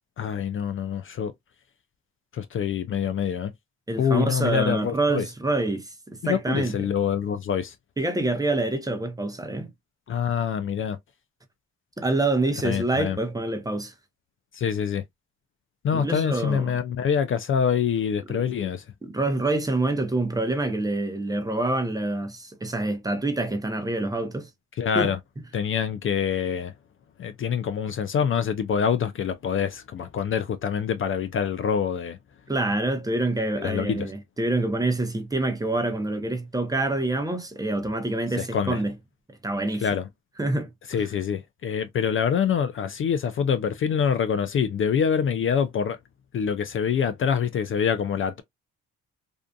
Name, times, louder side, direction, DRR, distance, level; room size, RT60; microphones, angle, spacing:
voice 1, 0.2-1.3 2.3-3.5 4.0-5.3 6.2-7.8 10.1-11.0 12.6-13.2 14.5-15.0 15.8-18.8 24.8-25.2 25.5-26.7 27.2-32.2 33.6-34.1 38.4-38.8 39.8-40.1 40.9-46.0 46.3-48.4, left 7 dB, 45° left, 0.4 m, -25 dB
voice 2, 3.9-6.7 8.0-9.7 12.0-13.9 15.9-16.6 19.0-24.5 24.9-25.1 32.5-38.9 39.4-40.0 40.4-40.7, right 2 dB, 10° right, 0.7 m, -26 dB
2.6 x 2.4 x 2.2 m
cardioid pair, 90°, 30 cm